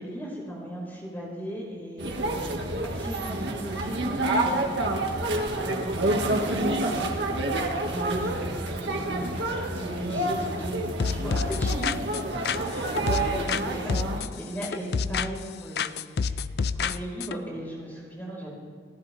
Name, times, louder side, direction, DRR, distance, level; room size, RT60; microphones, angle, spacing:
voice 1, 0.0-11.9 12.2-16.5 16.8-18.5, right 1 dB, 10° left, -4 dB, 4.7 m, -37 dB
sound 1, 2.0-14.2, right 2 dB, 80° right, 1.9 m, -28 dB
sound 2, 11.0-13.6 13.9-15.5 15.8-17.4, left 5 dB, 60° left, 0.4 m, -29 dB
29.0 x 11.5 x 3.5 m, 2.1 s
head